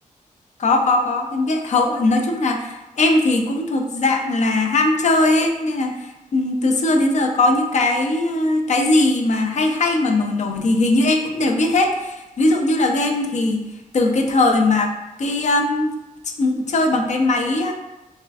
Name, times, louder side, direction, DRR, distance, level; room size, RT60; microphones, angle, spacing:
voice 1, 0.6-14.9 15.2-15.9 16.4-17.7, left 2 dB, 60° left, 3 dB, 0.4 m, -19 dB
4.2 x 2.5 x 2.3 m, 1.0 s
wide cardioid pair, 125°, 14 cm